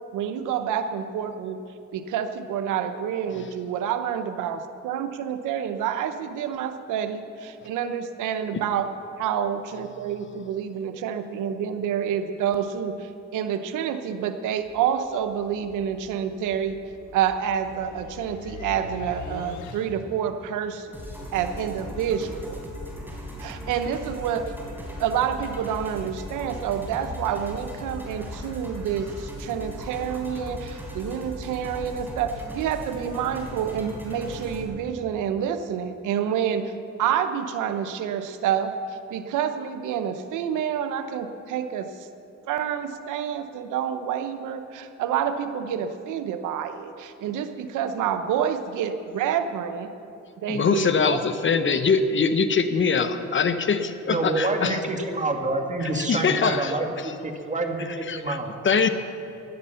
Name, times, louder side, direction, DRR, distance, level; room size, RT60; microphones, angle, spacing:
voice 1, 0.1-1.6 1.9-8.9 9.2-16.8 17.1-20.9 21.3-22.6 23.4-24.5 25.0-36.7 37.0-42.1 42.5-49.9 50.4-51.2 51.5-51.6, right 8 dB, 90° right, 9 dB, 0.9 m, -28 dB
sound 1, 14.6-20.3, left 5 dB, 70° left, 1.4 m, -42 dB
sound 2, 20.9-34.6, equal, 5° right, 3.9 m, -38 dB
voice 2, 50.5-54.8 55.8-56.7 58.1-58.4 58.6-58.9, left 5 dB, 40° left, 9 dB, 0.9 m, -23 dB
voice 3, 54.1-56.9 57.4-58.5, right 2 dB, 25° right, 4 dB, 1.9 m, -27 dB
16.5 x 11.0 x 5.7 m, 2.9 s
cardioid pair, 90°, 30 cm